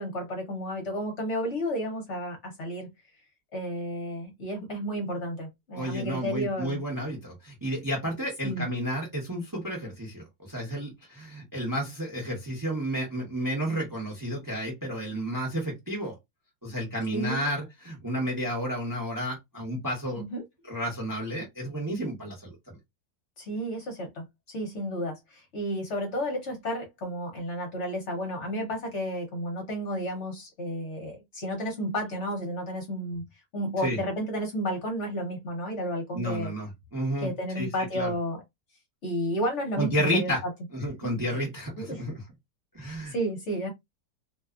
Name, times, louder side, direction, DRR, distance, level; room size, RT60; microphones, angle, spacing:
voice 1, 0.0-2.9 3.5-6.8 8.4-8.6 17.1-17.5 20.2-20.4 23.4-33.2 33.5-36.5 37.2-38.4 39.0-40.5 41.0-41.4 41.8-42.1 42.8-43.7, equal, 55° left, 1.0 m, -32 dB
voice 2, 5.7-16.2 16.6-20.2 20.7-22.8 33.8-34.0 36.1-37.7 37.9-38.1 39.8-40.4 40.7-42.1 42.7-43.1, equal, 20° right, 0.7 m, -31 dB
2.7 x 2.3 x 2.3 m
omnidirectional pair, 1.7 m